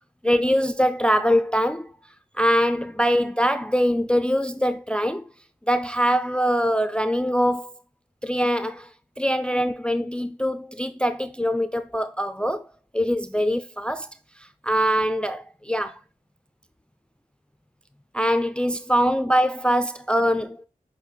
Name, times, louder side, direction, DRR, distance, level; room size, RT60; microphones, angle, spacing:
voice 1, 0.2-1.9 2.4-5.2 5.7-7.7 8.2-8.9 9.2-12.7 12.9-14.1 14.6-16.0 18.1-20.6, equal, 5° left, 0.3 m, -23 dB
6.4 x 2.1 x 3.4 m
cardioid pair, 40°, 15 cm